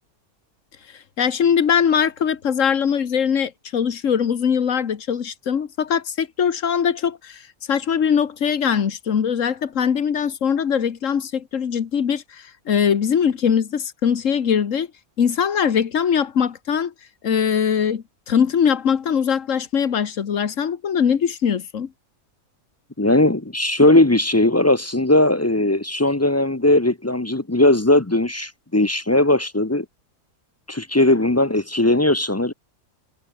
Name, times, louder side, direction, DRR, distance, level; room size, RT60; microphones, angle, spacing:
voice 1, 1.2-7.4 7.7-14.9 15.2-16.9 17.2-21.9, left 7 dB, 60° left, 1.6 m, -21 dB
voice 2, 23.0-29.8 30.7-32.5, left 1 dB, 15° left, 0.6 m, -18 dB
omnidirectional pair, 1.6 m